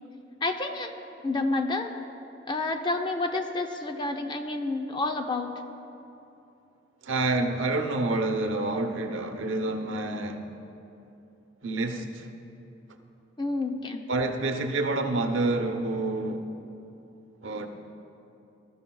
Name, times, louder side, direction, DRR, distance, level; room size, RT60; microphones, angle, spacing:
voice 1, 0.4-0.9 1.2-1.9 2.5-5.5 13.4-14.0, left 2 dB, 25° left, 0.6 m, -29 dB
voice 2, 7.0-10.4 11.6-12.3 14.1-16.4 17.4-17.7, right 2 dB, 80° right, 0.9 m, -28 dB
20.5 x 13.5 x 2.3 m
head